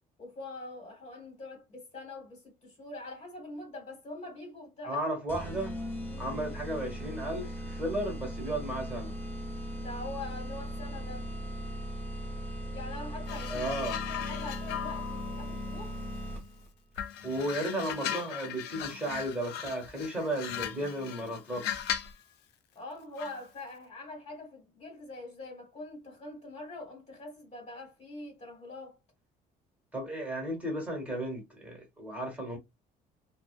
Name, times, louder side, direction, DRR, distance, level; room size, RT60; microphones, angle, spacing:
voice 1, 0.2-5.0 6.1-6.4 9.7-11.3 12.6-16.0 22.7-29.0, left 2 dB, 40° left, 1.4 m, -44 dB
voice 2, 4.8-5.8 6.2-9.1 13.5-14.0 17.2-21.7 29.9-32.6, right 1 dB, 10° right, 1.3 m, -34 dB
sound 1, 5.3-16.7, equal, 15° left, 1.0 m, -38 dB
sound 2, 13.3-16.5 16.9-22.2 23.2-23.4, left 10 dB, 85° left, 0.4 m, -38 dB
2.5 x 2.1 x 2.3 m
cardioid pair, 110°, 17 cm